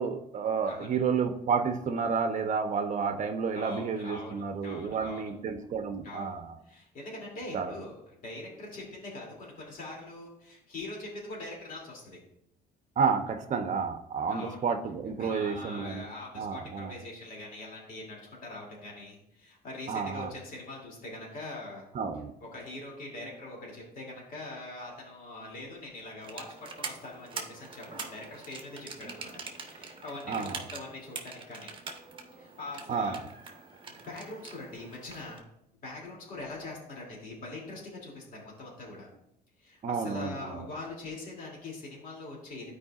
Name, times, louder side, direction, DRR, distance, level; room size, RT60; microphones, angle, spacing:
voice 1, 0.0-6.6 7.5-7.7 13.0-16.0 16.3-16.9 19.9-20.3 21.9-22.3 30.3-30.6 32.9-33.2 39.8-40.6, right 5 dB, 45° right, 5 dB, 0.8 m, -30 dB
voice 2, 3.5-5.2 6.0-6.3 6.6-12.2 14.3-14.6 15.2-21.9 22.4-26.4 26.8-29.3 29.6-31.7 32.4-33.2 34.1-35.5 35.8-39.1 39.6-42.7, left 2 dB, 55° left, -2 dB, 2.8 m, -43 dB
sound 1, 26.2-35.4, right 4 dB, 30° right, 1.2 m, -44 dB
13.0 x 4.8 x 2.5 m, 0.77 s
cardioid pair, 110°, 17 cm